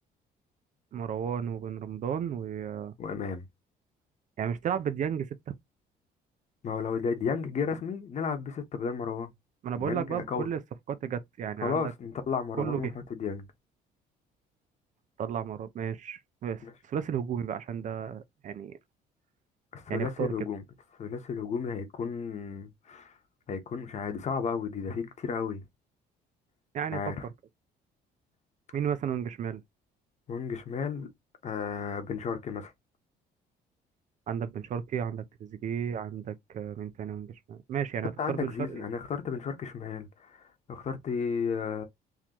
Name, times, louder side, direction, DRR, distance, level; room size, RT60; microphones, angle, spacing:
voice 1, 0.9-2.9 4.4-5.6 9.6-10.6 10.9-11.8 12.5-12.9 15.2-18.8 19.9-20.3 26.7-27.0 28.7-29.6 34.3-38.9, right 8 dB, 45° right, 0.5 m, -33 dB
voice 2, 3.0-3.4 6.6-9.3 9.8-10.5 11.6-13.5 16.6-16.7 19.7-20.6 21.0-23.1 23.5-25.6 26.9-27.3 30.3-31.1 31.4-32.7 38.2-41.8, left 6 dB, 45° left, 1.0 m, -33 dB
3.8 x 3.0 x 2.9 m
cardioid pair, 110°, 17 cm